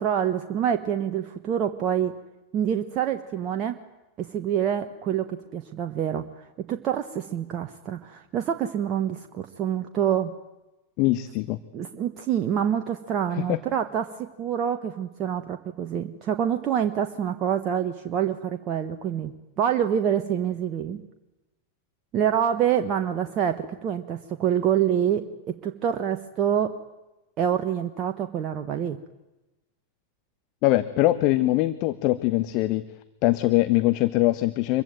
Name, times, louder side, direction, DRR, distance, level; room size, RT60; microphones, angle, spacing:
voice 1, 0.0-2.1 2.5-3.8 4.2-10.3 11.7-21.0 22.1-26.8 27.4-29.0, right 9 dB, 35° right, 6 dB, 1.4 m, -26 dB
voice 2, 11.0-11.6 13.3-13.6 30.6-32.8 33.2-34.8, left 17 dB, 40° left, 12 dB, 1.1 m, -22 dB
26.0 x 23.0 x 9.1 m, 1.0 s
figure-of-eight pair, 90°, 0 cm